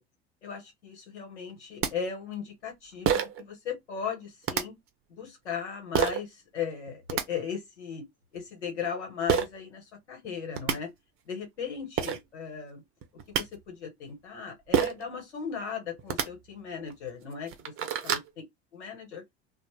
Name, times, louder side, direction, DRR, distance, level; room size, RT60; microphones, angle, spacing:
voice 1, 0.4-4.7 5.1-8.1 8.3-10.9 11.2-12.8 13.3-17.7 18.0-18.2 18.7-19.2, left 6 dB, 85° left, 1.2 m, -37 dB
sound 1, 1.5-1.6 1.8-1.9 3.1-3.4 4.4-4.6 5.9-6.2 6.9-7.2 9.3-9.5 10.2-10.3 10.6-10.8 11.6-11.7 12.0-12.2 13.0-13.4 14.7-15.0 16.0-16.3 16.9-17.0 17.4-18.3, right 8 dB, 40° right, 0.7 m, -27 dB
2.1 x 2.0 x 3.1 m
hypercardioid pair, 70°, 34 cm